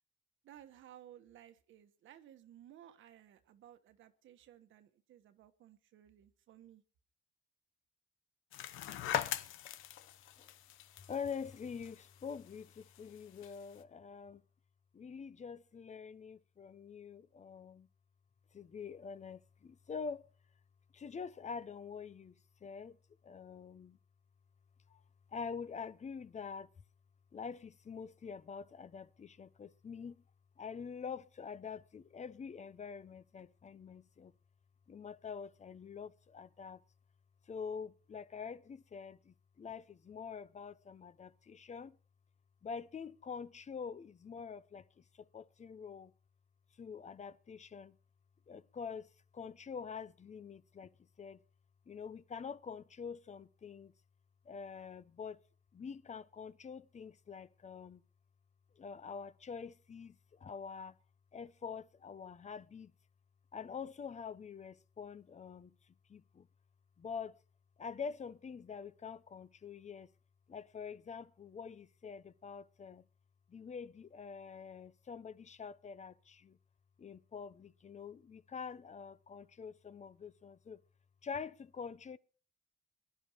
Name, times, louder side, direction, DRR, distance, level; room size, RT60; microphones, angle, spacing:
voice 1, 0.4-6.8, right 11 dB, 80° right, 1.3 m, -58 dB
sound 1, 8.5-13.8, left 11 dB, 90° left, 0.9 m, -42 dB
voice 2, 11.0-14.4 14.9-17.9 18.5-20.3 20.9-22.4 22.6-23.0 23.2-24.0 24.9-25.0 25.3-26.7 27.3-30.2 30.6-34.3 34.9-36.8 37.5-42.0 42.6-46.1 46.8-48.0 48.5-51.4 51.9-53.9 54.4-55.4 55.7-58.0 58.8-61.0 61.3-62.9 63.5-65.7 66.1-66.5 67.0-67.4 67.8-70.1 70.5-73.0 73.5-76.6 77.0-80.8 81.2-82.2, left 6 dB, 35° left, 0.8 m, -46 dB
22.0 x 11.0 x 3.1 m
cardioid pair, 90°, 20 cm